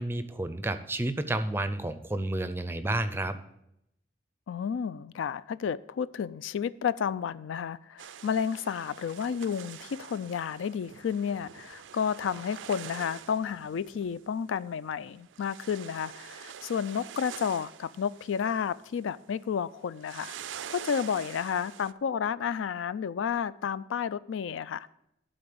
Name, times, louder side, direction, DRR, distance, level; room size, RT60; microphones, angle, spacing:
voice 1, 0.0-3.4, right 1 dB, 10° right, 11 dB, 0.4 m, -31 dB
voice 2, 4.5-20.3 20.7-24.9, left 7 dB, 85° left, 16 dB, 0.3 m, -31 dB
sound 1, 8.0-14.3 14.6-14.7 14.9-19.5 19.7-21.9, right 9 dB, 80° right, 0.4 m, -46 dB
12.0 x 4.0 x 6.8 m, 0.80 s
head